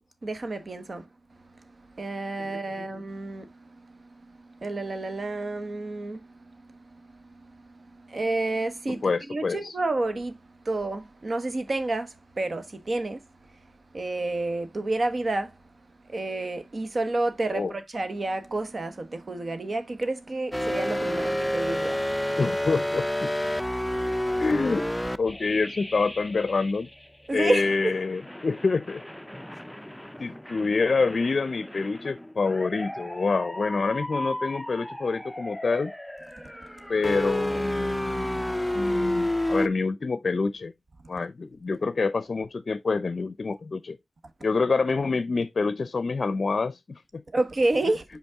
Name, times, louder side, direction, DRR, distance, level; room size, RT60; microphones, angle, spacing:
voice 1, 0.2-1.1 1.5-9.0 9.3-10.4 10.6-13.3 13.9-15.6 16.0-22.4 24.1-24.4 27.3-27.9 36.4-36.9 47.3-48.0, right 2 dB, 55° right, 1.1 m, -30 dB
voice 2, 2.4-2.9 8.9-9.7 17.5-17.7 22.4-23.3 24.4-24.9 25.2-26.9 27.3-29.0 30.2-35.9 36.9-40.7 41.1-44.0 44.4-47.2, left 4 dB, 65° left, 0.5 m, -27 dB
sound 1, 20.5-27.1 27.5-39.7, left 1 dB, 10° left, 0.5 m, -31 dB
5.3 x 5.0 x 3.5 m
cardioid pair, 45°, 0 cm